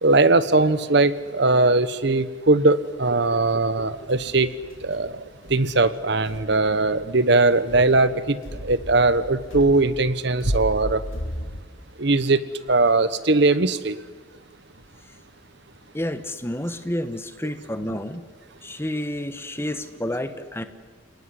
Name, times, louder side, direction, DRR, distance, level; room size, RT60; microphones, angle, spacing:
voice 1, 0.0-4.5 4.8-5.1 5.5-8.4 8.6-11.0 12.0-12.4 12.7-13.9, right 3 dB, 55° right, 14 dB, 1.1 m, -20 dB
sound 1, 3.6-11.6, equal, 80° left, 3.1 m, -35 dB
voice 2, 15.9-18.3 18.6-20.6, left 1 dB, 10° left, 10 dB, 1.2 m, -30 dB
29.5 x 19.0 x 9.9 m, 1.4 s
head